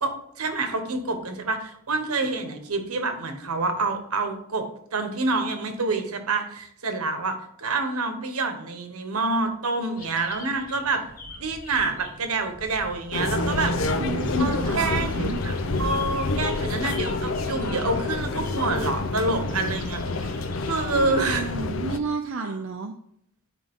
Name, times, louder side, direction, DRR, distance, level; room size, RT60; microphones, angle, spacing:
voice 1, 0.0-4.6 4.9-11.0 11.4-13.7 14.4-15.5 15.8-20.3 20.6-21.5, right 3 dB, 90° right, 6 dB, 1.1 m, -27 dB
sound 1, 10.0-21.4, left 1 dB, 40° left, 1.0 m, -42 dB
sound 2, 13.1-22.0, left 3 dB, 65° left, 0.6 m, -28 dB
voice 2, 14.0-15.4 20.9-22.9, right 4 dB, 65° right, 4 dB, 0.5 m, -31 dB
9.3 x 4.9 x 3.6 m, 0.69 s
head